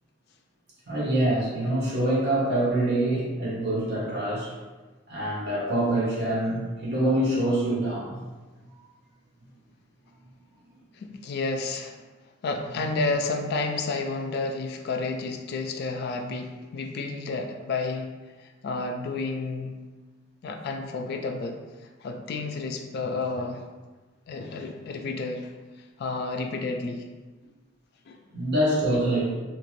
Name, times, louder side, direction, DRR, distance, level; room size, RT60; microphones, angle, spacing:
voice 1, 0.9-4.5 5.1-8.2 28.3-29.2, right 1 dB, 50° right, -7 dB, 1.0 m, -25 dB
voice 2, 10.9-12.0 12.4-18.1 18.4-19.8 20.4-21.6 22.0-23.6 24.3-25.5 26.0-27.1 27.4-27.5 28.1-28.2, left 3 dB, 50° left, 4 dB, 0.3 m, -31 dB
2.8 x 2.5 x 3.0 m, 1.3 s
head